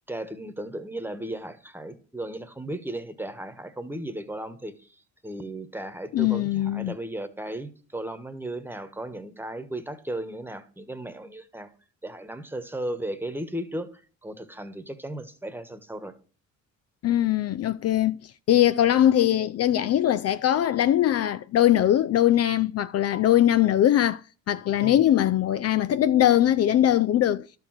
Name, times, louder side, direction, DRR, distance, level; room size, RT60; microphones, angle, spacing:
voice 1, 0.1-4.9 5.2-11.7 12.0-13.9 14.2-16.1 18.8-18.9 24.8-25.1, right 1 dB, 5° right, 1.2 m, -35 dB
voice 2, 6.1-7.0 17.0-18.2 18.5-24.2 24.5-27.5, left 12 dB, 55° left, 0.4 m, -21 dB
12.0 x 4.6 x 7.6 m
cardioid pair, 90°, 30 cm